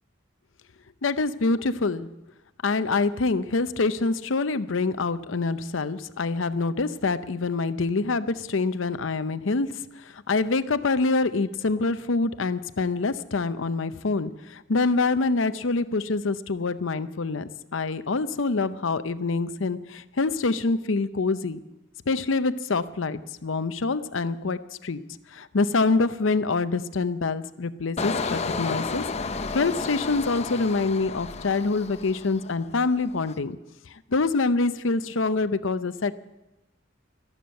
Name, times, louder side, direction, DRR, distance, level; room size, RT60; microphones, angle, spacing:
voice 1, 1.0-2.1 2.6-9.7 10.1-21.6 22.1-25.0 25.3-29.0 29.5-33.6 34.1-36.1, left 3 dB, 70° left, 13 dB, 0.7 m, -25 dB
Engine, 28.0-32.6 33.0-33.3, left 4 dB, 35° left, 0.7 m, -32 dB
13.5 x 12.5 x 7.7 m, 0.97 s
head